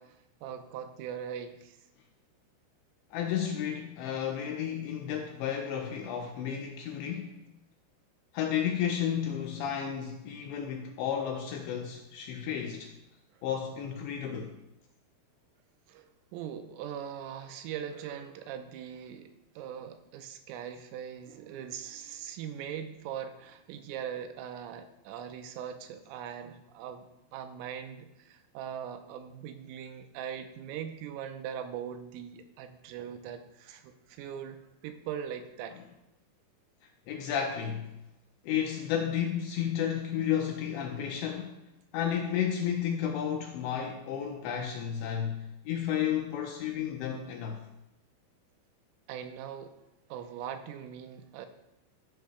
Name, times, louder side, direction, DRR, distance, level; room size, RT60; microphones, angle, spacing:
voice 1, 0.0-1.8 13.3-13.4 15.9-35.8 49.1-49.8 50.1-51.5, right 8 dB, 85° right, 3.3 m, -41 dB
voice 2, 3.1-7.4 8.3-12.9 13.4-14.5 37.1-37.9 38.4-41.6 41.9-47.6, left 9 dB, 80° left, 2.7 m, -32 dB
15.5 x 10.5 x 2.3 m
omnidirectional pair, 5.9 m